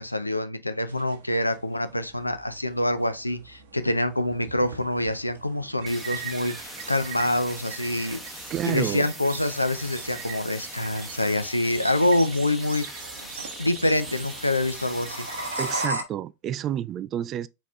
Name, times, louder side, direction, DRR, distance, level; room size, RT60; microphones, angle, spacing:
voice 1, 0.0-13.0 13.6-15.3, left 1 dB, 85° left, 0.5 m, -26 dB
sound 1, 0.9-15.8, right 7 dB, 55° right, 0.8 m, -43 dB
sound 2, 4.7-16.0, right 1 dB, 80° right, 1.0 m, -39 dB
sound 3, 5.9-15.9, equal, ahead, 0.8 m, -41 dB
voice 2, 8.5-9.1 15.6-17.5, right 11 dB, 30° right, 0.3 m, -29 dB
4.2 x 4.1 x 2.4 m
figure-of-eight pair, 90°, 0 cm